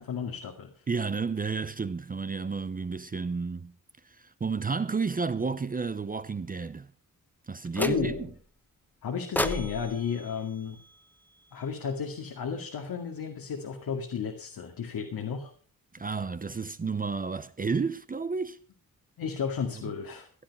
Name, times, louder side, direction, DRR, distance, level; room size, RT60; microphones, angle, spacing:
voice 1, 0.0-0.8 7.8-8.3 9.0-10.8 11.5-15.5 16.0-16.1 19.2-20.3, left 6 dB, 80° left, 2.3 m, -33 dB
voice 2, 0.9-3.7 4.1-6.9 7.5-8.1 15.9-18.6, right 4 dB, 25° right, 0.7 m, -31 dB
sound 1, 7.7-8.4 9.3-11.6, left 1 dB, 5° left, 1.0 m, -35 dB
16.0 x 11.0 x 5.4 m
wide cardioid pair, 130°, 34 cm